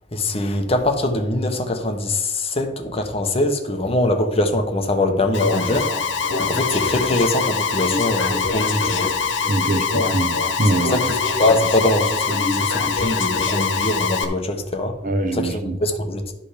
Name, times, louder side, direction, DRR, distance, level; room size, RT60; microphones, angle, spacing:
voice 1, 0.1-5.9 6.4-9.1 10.9-11.0 11.4-14.9 15.3-16.3, left 1 dB, 30° left, 1.0 m, -22 dB
Alarm, 5.3-14.2, left 5 dB, 85° left, 1.2 m, -23 dB
voice 2, 9.5-11.1 15.0-15.8, right 2 dB, 45° right, 0.8 m, -23 dB
11.5 x 5.1 x 5.0 m
head